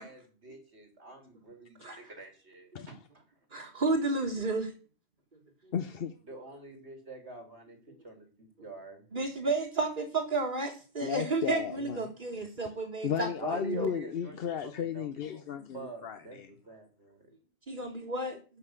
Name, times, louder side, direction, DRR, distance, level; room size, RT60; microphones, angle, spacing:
voice 1, 0.0-2.7 6.3-7.8 8.0-8.3 8.6-9.0 13.4-14.3 14.6-15.1 15.3-15.4 15.7-16.4 16.7-17.2, right 3 dB, 75° right, 3.8 m, -44 dB
voice 2, 3.5-4.7 9.1-13.3 13.7-13.9 17.7-18.4, right 3 dB, 45° right, 2.1 m, -31 dB
voice 3, 5.7-6.2 11.0-12.1 13.0-16.6, left 8 dB, 60° left, 0.9 m, -34 dB
12.5 x 5.7 x 8.1 m
omnidirectional pair, 1.1 m